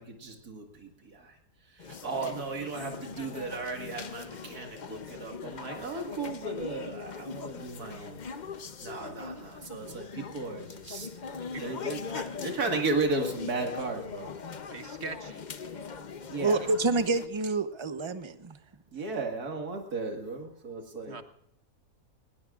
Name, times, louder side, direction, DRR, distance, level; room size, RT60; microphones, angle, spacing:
voice 1, 0.0-1.3 1.7-8.2 8.8-11.1 11.6-14.3 16.3-16.6 18.9-21.2, right 3 dB, 85° right, 2 dB, 2.4 m, -35 dB
sound 1, 1.8-17.3, left 5 dB, 40° left, 0.6 m, -41 dB
voice 2, 14.7-15.6 21.1-21.2, right 3 dB, 50° right, 9 dB, 1.3 m, -41 dB
voice 3, 16.4-18.6, right 3 dB, 25° right, 10 dB, 0.7 m, -28 dB
20.0 x 20.0 x 2.5 m, 0.75 s
omnidirectional pair, 1.6 m